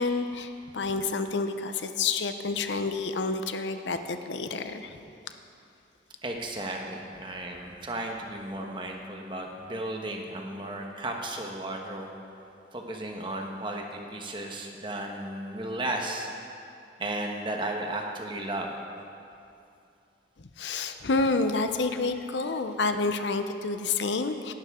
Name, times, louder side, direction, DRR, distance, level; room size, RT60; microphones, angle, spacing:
voice 1, 0.0-4.9 20.4-24.5, left 3 dB, 85° left, 8 dB, 0.7 m, -29 dB
voice 2, 6.2-12.1 12.7-16.3 17.0-18.7, right 1 dB, 25° right, 1 dB, 1.2 m, -34 dB
18.0 x 11.5 x 3.7 m, 2.6 s
head